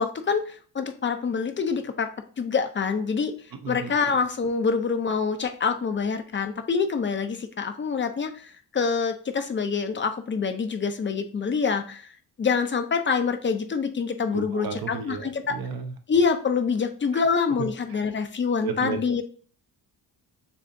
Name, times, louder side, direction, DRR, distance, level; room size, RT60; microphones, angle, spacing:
voice 1, 0.0-2.1 2.4-3.3 3.7-12.1 12.4-15.6 16.1-19.2, left 5 dB, 30° left, 7 dB, 0.5 m, -26 dB
voice 2, 3.5-3.9 14.3-15.9 17.6-18.0 18.6-19.0, right 6 dB, 65° right, 6 dB, 0.7 m, -33 dB
6.8 x 2.8 x 2.6 m, 0.43 s
wide cardioid pair, 150°, 38 cm